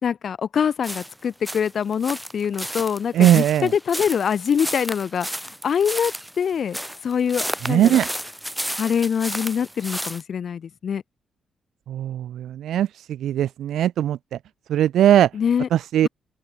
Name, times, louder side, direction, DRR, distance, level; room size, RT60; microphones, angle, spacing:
voice 1, 0.0-6.8 7.0-8.0 8.8-11.0 15.3-15.7, left 7 dB, 45° left, 2.4 m, -24 dB
sound 1, 0.8-10.2, equal, ahead, 3.2 m, -32 dB
voice 2, 3.1-3.7 7.6-8.1 11.9-12.9 13.2-14.2 14.7-15.3 15.7-16.1, right 11 dB, 75° right, 0.8 m, -19 dB
open air
wide cardioid pair, 175°, 0 cm